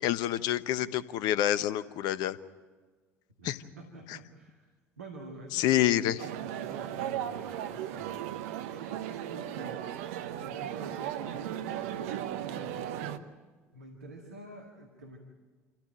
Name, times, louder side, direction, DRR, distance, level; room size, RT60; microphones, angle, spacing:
voice 1, 0.0-2.4 3.4-3.6 5.5-6.2, left 12 dB, 60° left, 14 dB, 0.9 m, -27 dB
voice 2, 3.4-4.7 5.0-9.9 10.1-13.4 13.7-15.2, right 2 dB, 85° right, 1 dB, 2.1 m, -47 dB
sound 1, 6.2-13.2, right 11 dB, 70° right, 1.0 m, -36 dB
27.0 x 15.0 x 9.0 m, 1.4 s
figure-of-eight pair, 60°, 8 cm